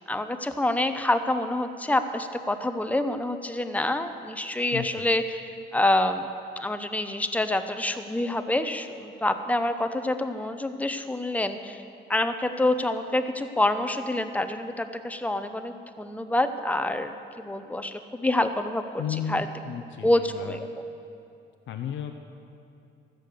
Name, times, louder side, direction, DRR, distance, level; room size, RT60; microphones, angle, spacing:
voice 1, 0.1-5.4 5.7-6.3 6.6-11.8 12.1-18.8 19.3-19.5 20.0-20.7, left 1 dB, 5° left, 8 dB, 0.7 m, -27 dB
voice 2, 4.7-5.1 19.0-20.6 21.7-22.2, left 8 dB, 75° left, 5 dB, 0.7 m, -34 dB
13.0 x 7.7 x 6.9 m, 2.6 s
cardioid pair, 90°, 20 cm